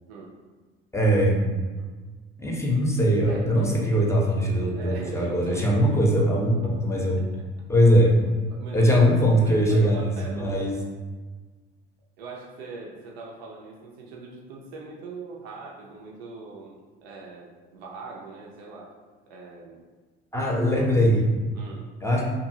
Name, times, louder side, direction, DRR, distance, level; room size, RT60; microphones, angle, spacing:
voice 1, 0.9-1.5 2.4-7.2 7.7-8.1 8.7-10.8 20.3-21.3 22.0-22.2, equal, 10° left, -2 dB, 0.6 m, -21 dB
voice 2, 3.3-3.8 4.7-7.1 7.7-10.8 12.2-19.0 19.3-19.8 21.5-21.9, right 3 dB, 75° right, -2 dB, 0.5 m, -41 dB
2.7 x 2.5 x 2.7 m, 1.3 s
figure-of-eight pair, 55°, 31 cm